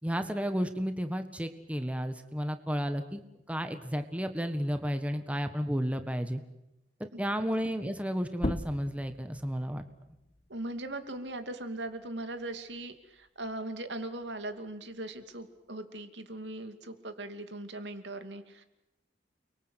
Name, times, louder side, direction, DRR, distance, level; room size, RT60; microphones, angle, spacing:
voice 1, 0.0-3.2 3.5-6.4 7.0-9.8, equal, 10° right, 8 dB, 1.6 m, -32 dB
sound 1, 8.3-13.5 13.9-15.7, left 1 dB, 35° left, 1.1 m, -41 dB
voice 2, 10.5-18.6, right 1 dB, 80° right, 8 dB, 2.7 m, -39 dB
29.5 x 23.5 x 8.2 m, 0.88 s
head